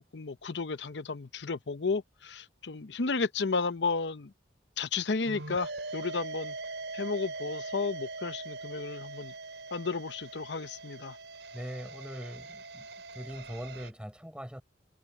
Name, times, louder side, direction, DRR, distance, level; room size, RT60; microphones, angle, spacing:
voice 1, 0.0-4.3 4.8-6.6 6.9-9.3 9.7-11.2, left 4 dB, 75° left, 0.8 m, -33 dB
sound 1, 5.3-13.9, right 3 dB, 80° right, 4.7 m, -42 dB
voice 2, 11.5-12.9 13.1-14.6, equal, 5° right, 5.2 m, -41 dB
head